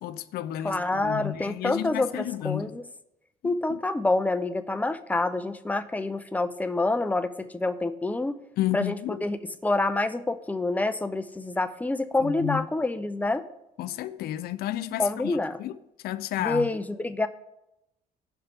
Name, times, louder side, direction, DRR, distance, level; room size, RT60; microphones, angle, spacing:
voice 1, 0.0-2.8 3.4-3.8 8.6-9.2 12.2-12.7 13.8-15.8 16.0-16.7, left 13 dB, 65° left, 0.5 m, -32 dB
voice 2, 0.6-2.8 3.4-8.4 8.7-13.4 15.0-15.6 16.4-17.3, left 2 dB, 10° left, 0.6 m, -27 dB
16.5 x 5.7 x 3.5 m
cardioid pair, 110°, 17 cm